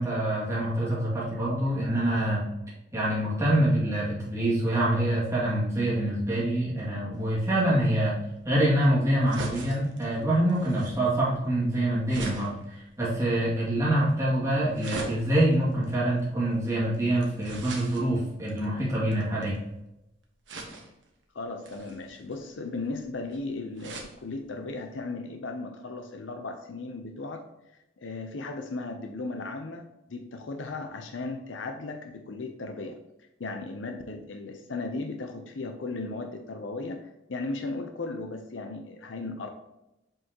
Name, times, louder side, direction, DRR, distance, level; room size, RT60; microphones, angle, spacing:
voice 1, 0.0-2.5 2.9-8.2 8.4-19.6, right 1 dB, 15° right, -8 dB, 2.3 m, -25 dB
sound 1, 7.1-19.8 20.5-21.1 21.6-24.1 24.6-24.7 24.9-25.0, right 2 dB, 80° right, 1.4 m, -43 dB
voice 2, 21.3-27.4 28.0-33.0 33.4-39.5, left 3 dB, 90° left, 4 dB, 0.7 m, -36 dB
7.6 x 5.4 x 3.0 m, 0.91 s
head